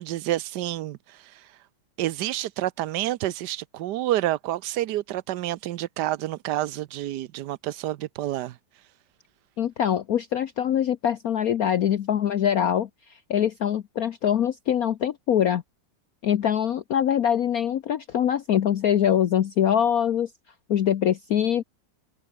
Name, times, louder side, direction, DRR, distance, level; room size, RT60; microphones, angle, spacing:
voice 1, 0.0-1.6 2.0-8.8, right 14 dB, 70° right, 1.2 m, -29 dB
voice 2, 9.6-12.9 13.3-15.6 16.2-20.3 20.7-21.6, left 9 dB, 60° left, 1.1 m, -23 dB
omnidirectional pair, 2.1 m